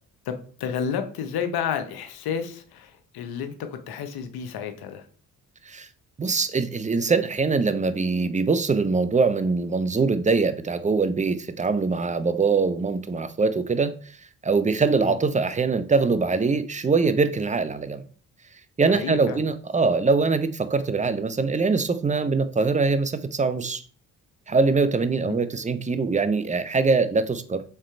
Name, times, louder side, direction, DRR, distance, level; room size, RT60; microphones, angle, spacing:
voice 1, 0.3-5.0 15.0-15.2 18.9-19.4 25.3-25.4, left 7 dB, 75° left, 0.8 m, -31 dB
voice 2, 6.2-13.9 14.4-18.0 18.8-23.8 24.5-27.6, right 4 dB, 20° right, 0.6 m, -23 dB
3.6 x 3.2 x 4.3 m
supercardioid pair, 50°, 38 cm